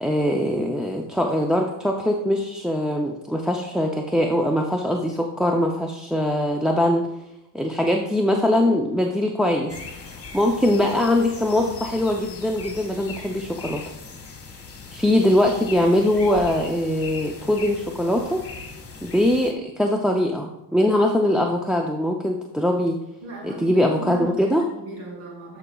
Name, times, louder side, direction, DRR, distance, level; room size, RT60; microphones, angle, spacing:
voice 1, 0.0-7.1 7.5-9.7 10.3-13.8 14.9-18.4 19.0-23.0 23.4-24.6, left 1 dB, ahead, 1 dB, 0.4 m, -22 dB
sound 1, 9.7-19.5, left 4 dB, 30° left, 1.3 m, -39 dB
voice 2, 23.2-25.6, right 2 dB, 85° right, -2 dB, 2.7 m, -36 dB
13.5 x 4.9 x 2.3 m, 0.90 s
cardioid pair, 100°, 46 cm